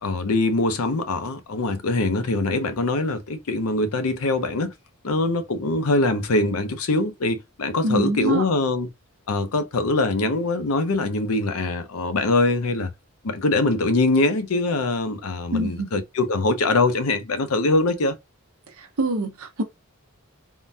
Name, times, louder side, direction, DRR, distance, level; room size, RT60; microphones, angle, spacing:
voice 1, 0.0-4.7 5.0-8.9 9.3-12.9 13.2-18.2, left 2 dB, 80° left, 0.6 m, -23 dB
voice 2, 7.8-8.5 15.5-15.9 18.7-19.6, right 1 dB, 75° right, 0.8 m, -25 dB
3.6 x 2.2 x 2.7 m
head